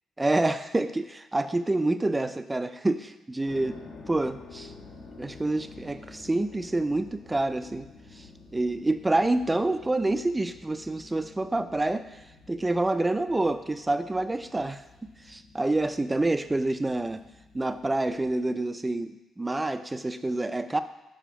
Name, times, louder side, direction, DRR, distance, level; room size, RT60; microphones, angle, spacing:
voice 1, 0.2-3.8 4.1-4.7 5.2-7.9 8.1-8.3 8.5-12.2 12.5-14.8 15.3-17.2 17.5-20.8, right 2 dB, 15° right, 11 dB, 0.3 m, -27 dB
sound 1, 3.5-18.3, left 3 dB, 65° left, 0.9 m, -50 dB
5.0 x 4.2 x 4.6 m, 1.0 s
cardioid pair, 90°, 0 cm